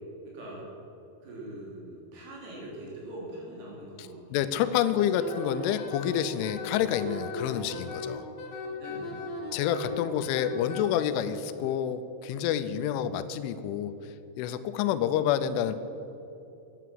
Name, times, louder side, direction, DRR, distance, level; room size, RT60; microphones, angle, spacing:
voice 1, 0.3-0.7 1.2-4.4 8.8-10.2, right 1 dB, 80° right, -4 dB, 6.1 m, -43 dB
voice 2, 4.0-8.2 9.5-13.9 14.4-15.8, left 10 dB, 85° left, 12 dB, 3.0 m, -28 dB
Wind instrument woodwind instrument, 5.2-10.8, left 3 dB, 55° left, 2.1 m, -37 dB
11.0 x 10.0 x 7.6 m, 3.0 s
omnidirectional pair, 5.6 m